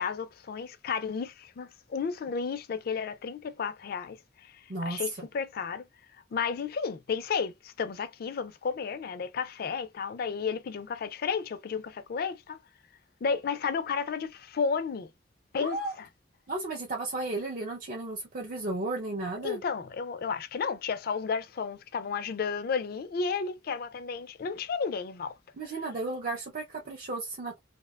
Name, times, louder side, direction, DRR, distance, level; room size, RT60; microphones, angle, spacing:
voice 1, 0.0-4.2 4.4-5.9 6.3-12.6 13.2-15.1 15.5-16.1 19.4-25.3, left 5 dB, 55° left, 0.4 m, -32 dB
voice 2, 4.7-5.3 15.6-15.9 16.5-19.6 25.6-27.6, right 2 dB, 45° right, 0.5 m, -34 dB
2.7 x 2.1 x 2.2 m
head